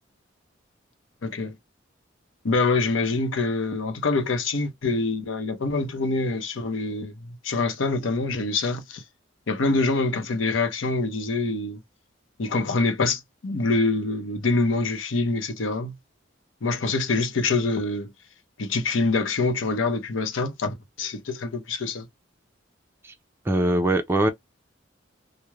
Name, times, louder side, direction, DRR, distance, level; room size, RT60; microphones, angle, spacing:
voice 1, 1.2-1.6 2.4-9.0 9.5-11.8 12.4-16.0 16.6-18.1 18.6-22.1, left 3 dB, 85° left, 0.7 m, -25 dB
voice 2, 23.4-24.3, right 1 dB, 10° right, 0.4 m, -22 dB
3.1 x 2.1 x 2.2 m
head